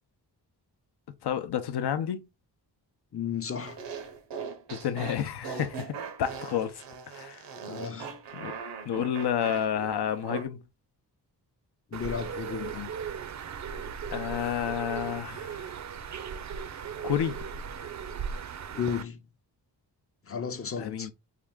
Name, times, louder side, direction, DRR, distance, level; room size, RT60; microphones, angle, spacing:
voice 1, 1.2-2.3 4.7-7.4 8.3-8.5 8.8-10.6 14.1-15.6 17.0-17.4 20.8-21.1, left 9 dB, 70° left, 0.7 m, -30 dB
voice 2, 3.1-3.8 7.7-8.1 11.9-12.9 18.7-19.2 20.3-21.1, left 7 dB, 35° left, 0.6 m, -34 dB
sound 1, 3.6-10.4, right 6 dB, 85° right, 0.8 m, -40 dB
Bird, 11.9-19.0, right 7 dB, 45° right, 0.5 m, -37 dB
3.6 x 2.5 x 3.5 m
cardioid pair, 75°, 41 cm